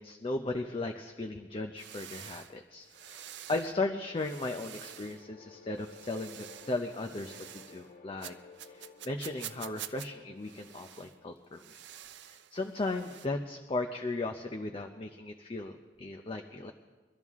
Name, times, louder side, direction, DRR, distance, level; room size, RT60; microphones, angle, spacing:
voice 1, 0.0-8.4 8.6-11.6 12.3-16.7, left 2 dB, 30° left, 4 dB, 0.6 m, -36 dB
sound 1, 1.8-3.8 4.2-5.2 5.7-7.9 8.2-10.1 10.4-11.2 11.5-13.3, right 12 dB, 70° right, 0.5 m, -48 dB
sound 2, 2.8-11.9, left 4 dB, 55° left, 2.2 m, -56 dB
23.0 x 12.5 x 3.6 m, 1.3 s
head